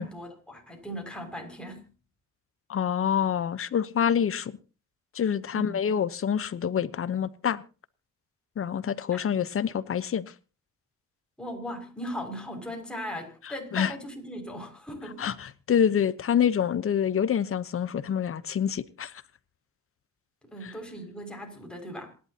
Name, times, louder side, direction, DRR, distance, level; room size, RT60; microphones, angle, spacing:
voice 1, 0.0-1.8 5.5-5.9 9.1-9.2 11.4-15.3 20.4-22.1, equal, 5° left, 6.0 m, -38 dB
voice 2, 2.7-4.6 5.1-7.6 8.6-10.3 13.4-13.9 15.2-19.2 20.6-20.7, left 8 dB, 45° left, 1.0 m, -27 dB
27.0 x 11.5 x 2.9 m
cardioid pair, 90°, 30 cm